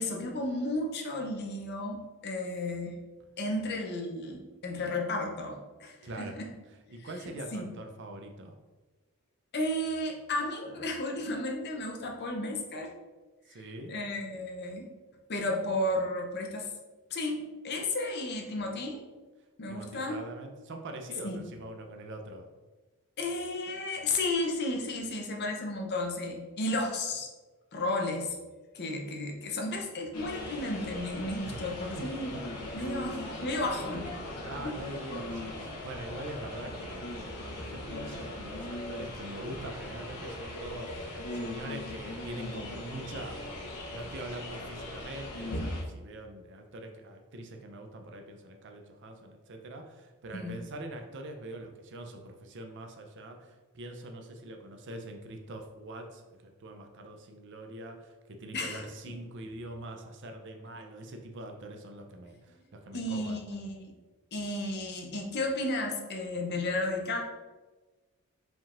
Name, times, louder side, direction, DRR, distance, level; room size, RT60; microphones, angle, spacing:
voice 1, 0.0-3.0 3.4-6.5 7.5-7.7 9.5-12.9 13.9-14.9 15.3-16.7 17.1-19.0 19.6-20.2 21.2-21.4 23.2-27.3 27.7-28.4 28.7-32.3 32.7-34.1 34.6-34.7 50.3-50.5 58.5-58.9 62.9-63.9 64.3-67.2, left 2 dB, 45° left, 1 dB, 0.6 m, -33 dB
voice 2, 6.0-6.4 6.9-8.5 13.5-13.9 19.7-22.5 31.4-31.7 32.0-32.4 32.8-32.9 33.6-33.7 34.3-43.5 43.9-63.4, right 1 dB, 55° right, 4 dB, 0.5 m, -43 dB
sound 1, 30.1-45.8, left 1 dB, 85° left, 0.8 m, -39 dB
5.1 x 3.6 x 2.5 m, 1.2 s
head